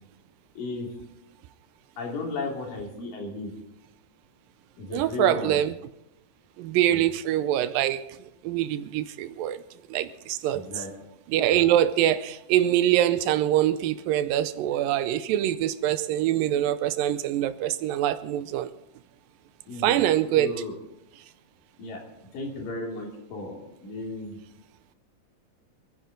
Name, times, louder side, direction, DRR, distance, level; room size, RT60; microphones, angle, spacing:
voice 1, 0.6-0.9 2.0-3.5 4.8-5.6 6.9-7.0 10.5-10.9 19.7-20.0 20.4-20.7 21.8-22.0 22.3-24.4, left 3 dB, 70° left, 4.3 m, -34 dB
voice 2, 4.9-5.8 6.6-9.6 9.9-10.8 11.3-18.7 19.8-20.6, right 12 dB, 80° right, 2.3 m, -24 dB
27.0 x 10.0 x 3.9 m
omnidirectional pair, 4.1 m